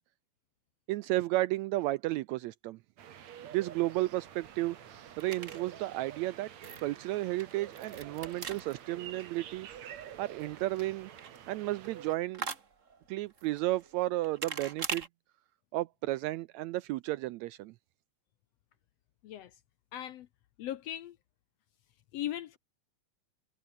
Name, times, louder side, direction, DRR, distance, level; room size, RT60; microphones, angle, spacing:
voice 1, 0.9-2.8 3.4-4.8 5.2-6.5 6.8-9.7 10.2-11.1 11.5-12.5 13.1-15.1 15.7-17.7, right 17 dB, 80° right, 1.7 m, -33 dB
sound 1, 3.0-12.2, right 9 dB, 65° right, 2.9 m, -48 dB
sound 2, 3.8-15.1, right 5 dB, 35° right, 1.4 m, -45 dB
voice 2, 19.2-19.6 19.9-20.3 20.6-21.2 22.1-22.6, left 12 dB, 70° left, 1.7 m, -38 dB
omnidirectional pair, 3.6 m